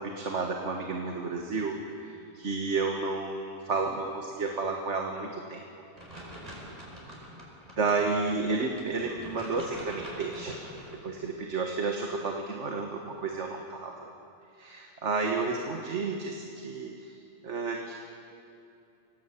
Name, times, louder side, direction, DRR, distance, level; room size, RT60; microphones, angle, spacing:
voice 1, 0.0-5.6 7.8-10.6 11.0-13.9 14.6-17.1 17.4-17.9, right 4 dB, 85° right, 2 dB, 1.9 m, -31 dB
sound 1, 6.0-11.0, equal, 35° right, 5.1 m, -45 dB
25.0 x 17.5 x 8.3 m, 2.7 s
omnidirectional pair, 1.2 m